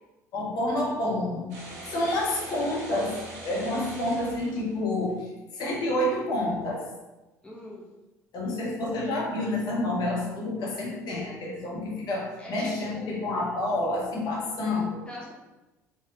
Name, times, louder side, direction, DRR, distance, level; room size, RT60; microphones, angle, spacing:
voice 1, 0.3-6.8 8.3-15.0, left 1 dB, 50° left, -3 dB, 1.2 m, -29 dB
sound 1, 1.5-5.1, right 1 dB, 65° right, 1.0 m, -42 dB
voice 2, 7.4-7.9 12.4-13.3 15.1-15.3, left 1 dB, 10° left, -3 dB, 0.8 m, -42 dB
4.0 x 3.4 x 2.7 m, 1.1 s
figure-of-eight pair, 60°, 9 cm